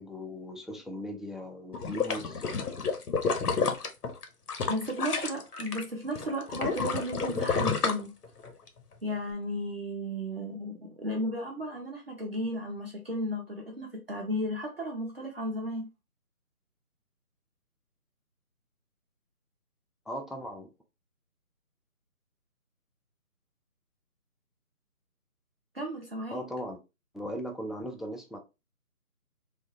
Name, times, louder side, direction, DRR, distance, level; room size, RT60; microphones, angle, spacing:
voice 1, 0.0-2.4 20.1-20.7 26.3-26.8 27.1-28.4, equal, ahead, 0.3 m, -38 dB
sound 1, 1.7-5.8 6.2-8.7 9.1-9.2, left 5 dB, 90° left, 0.8 m, -30 dB
voice 2, 4.7-8.1 9.0-15.9 25.7-26.4, equal, 40° right, 0.7 m, -34 dB
3.3 x 2.0 x 2.7 m
figure-of-eight pair, 170°, 45 cm